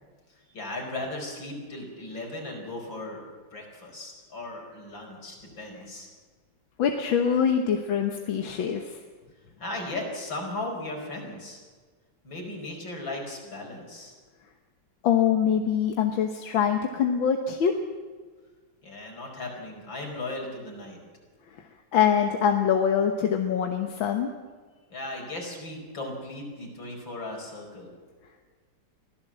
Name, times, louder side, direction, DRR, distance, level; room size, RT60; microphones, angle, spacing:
voice 1, 0.3-3.2 3.5-6.1 9.6-11.6 12.2-14.2 18.8-21.0 24.9-27.9, left 2 dB, 75° left, 1 dB, 5.8 m, -37 dB
voice 2, 6.8-9.0 15.0-17.8 21.9-24.3, left 8 dB, 90° left, 4 dB, 2.0 m, -24 dB
24.0 x 16.0 x 7.5 m, 1.5 s
omnidirectional pair, 2.1 m